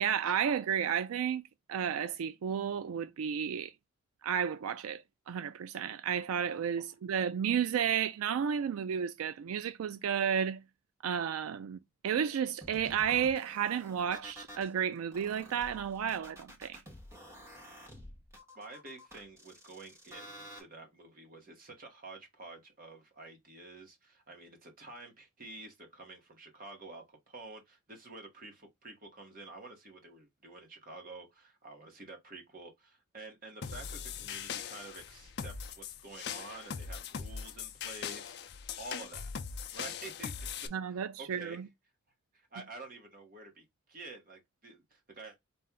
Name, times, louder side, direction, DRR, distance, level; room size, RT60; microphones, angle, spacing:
voice 1, 0.0-1.4 1.7-3.7 4.2-10.6 11.0-16.8 40.7-41.7, right 8 dB, 85° right, 0.3 m, -32 dB
sound 1, 12.6-14.7 15.1-20.6, equal, 15° right, 1.0 m, -51 dB
voice 2, 18.5-39.3 39.7-41.7 42.3-45.4, right 2 dB, 40° right, 1.3 m, -49 dB
sound 2, 33.6-40.7, left 7 dB, 50° left, 0.5 m, -41 dB
4.4 x 2.5 x 3.6 m
head